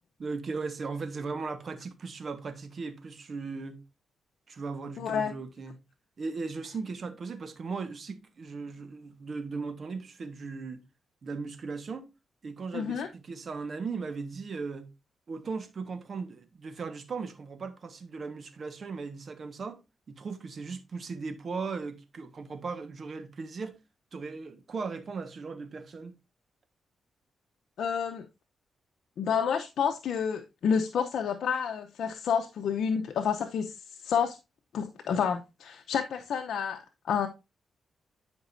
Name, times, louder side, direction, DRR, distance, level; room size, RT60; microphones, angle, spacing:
voice 1, 0.2-3.8 4.5-5.7 6.2-10.8 11.2-12.1 12.4-14.9 15.3-19.8 20.1-23.8 24.1-26.1, right 4 dB, 55° right, 1.3 m, -37 dB
voice 2, 5.0-5.3 12.7-13.1 27.8-28.2 29.2-33.7 34.0-34.4 34.7-36.8 37.1-37.3, left 7 dB, 80° left, 0.7 m, -29 dB
11.0 x 5.2 x 2.6 m
cardioid pair, 80°, 0 cm